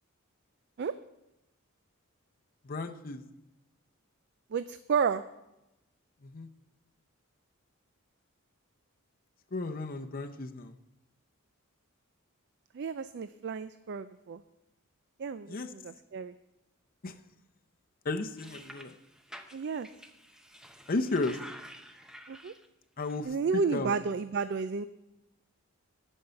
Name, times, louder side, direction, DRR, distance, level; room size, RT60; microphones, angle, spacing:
voice 1, 2.6-3.2 6.2-6.5 9.5-10.7 15.5-15.7 17.0-17.1 18.0-18.9 20.9-21.4 23.0-23.9, left 2 dB, 40° left, 5 dB, 0.7 m, -34 dB
voice 2, 4.5-5.2 12.7-14.4 15.2-16.3 19.5-19.9 22.3-22.5 23.3-24.9, right 5 dB, 50° right, 13 dB, 0.4 m, -32 dB
sound 1, 18.4-22.7 23.0-23.2, equal, 5° right, 0.6 m, -50 dB
12.0 x 5.5 x 8.0 m, 0.93 s
head